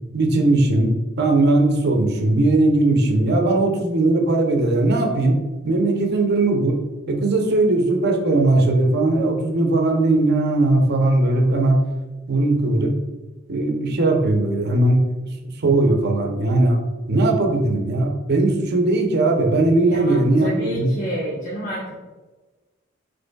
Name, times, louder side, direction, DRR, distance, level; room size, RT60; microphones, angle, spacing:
voice 1, 0.1-6.8 7.1-11.8 12.3-12.9 13.5-15.3 15.6-16.8 17.1-20.9, right 2 dB, 55° right, 3 dB, 0.7 m, -19 dB
voice 2, 19.8-21.9, equal, 45° left, -8 dB, 1.0 m, -29 dB
5.1 x 4.1 x 2.3 m, 1.2 s
head